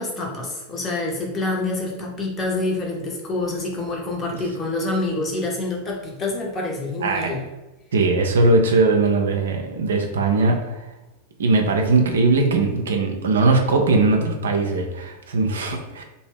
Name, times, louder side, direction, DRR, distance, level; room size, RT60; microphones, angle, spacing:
voice 1, 0.0-7.4, left 2 dB, 25° left, -1 dB, 0.8 m, -27 dB
voice 2, 7.0-7.4 7.9-10.8 11.4-16.0, right 3 dB, 65° right, 3 dB, 0.4 m, -20 dB
2.8 x 2.1 x 3.3 m, 1.1 s
figure-of-eight pair, 90°, 0 cm